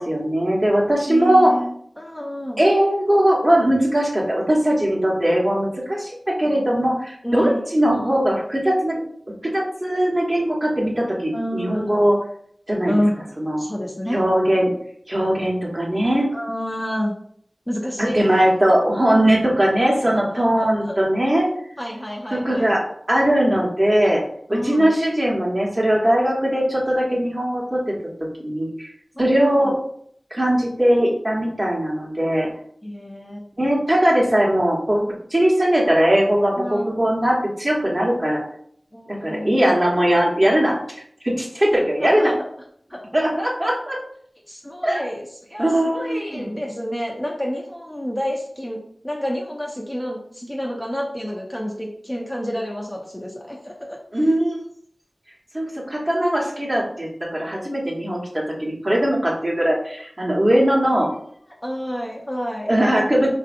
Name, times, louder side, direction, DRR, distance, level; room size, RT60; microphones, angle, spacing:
voice 1, 0.0-1.5 2.6-9.0 9.4-12.2 12.7-12.9 13.4-13.6 14.1-14.7 15.1-16.3 18.0-21.5 22.3-22.8 23.1-24.2 24.5-27.9 28.4-28.9 29.2-29.8 30.3-32.5 33.6-35.0 35.3-38.4 39.1-40.8 41.2-42.3 43.1-44.0 44.8-45.0 45.6-46.5 54.1-54.6 55.5-61.1 62.7-63.3, right 1 dB, 30° right, -3 dB, 1.2 m, -20 dB
voice 2, 1.1-2.6 6.5-6.7 7.2-7.6 11.3-12.1 12.9-13.2 13.6-14.2 16.3-17.2 17.7-18.5 19.9-20.2 20.6-21.0 21.8-22.8 24.5-24.9 29.1-29.7 32.8-33.4 36.6-37.0 38.9-39.7 42.0-42.3 42.9-43.0 44.5-48.8 49.0-54.0 61.6-62.7, equal, 15° left, -1 dB, 0.6 m, -29 dB
3.9 x 2.6 x 2.6 m, 0.65 s
wide cardioid pair, 50°, 0 cm